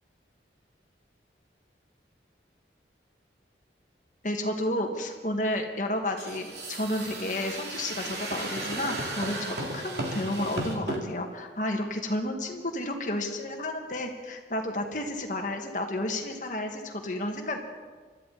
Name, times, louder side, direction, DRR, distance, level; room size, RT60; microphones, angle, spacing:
voice 1, 4.2-17.6, left 1 dB, 45° left, 3 dB, 1.8 m, -31 dB
sound 1, 6.2-11.0, right 2 dB, 70° right, 2.8 m, -35 dB
23.5 x 13.0 x 4.1 m, 1.4 s
head